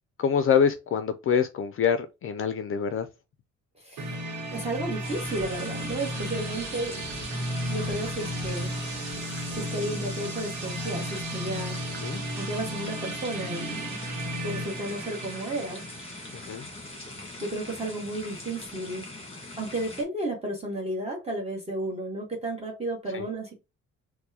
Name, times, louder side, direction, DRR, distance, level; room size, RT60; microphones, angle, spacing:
voice 1, 0.2-3.1 12.0-12.2 16.5-16.6 23.1-23.2, left 7 dB, 45° left, 0.4 m, -25 dB
voice 2, 3.8-7.0 7.7-8.7 9.5-11.8 12.4-14.0 14.4-15.8 17.4-19.1 19.6-23.5, right 1 dB, 20° right, 1.1 m, -33 dB
sound 1, 4.0-17.7, right 1 dB, 85° right, 0.9 m, -34 dB
sound 2, 5.0-20.0, left 2 dB, 20° left, 1.4 m, -42 dB
4.4 x 2.1 x 2.7 m
cardioid pair, 90°, 30 cm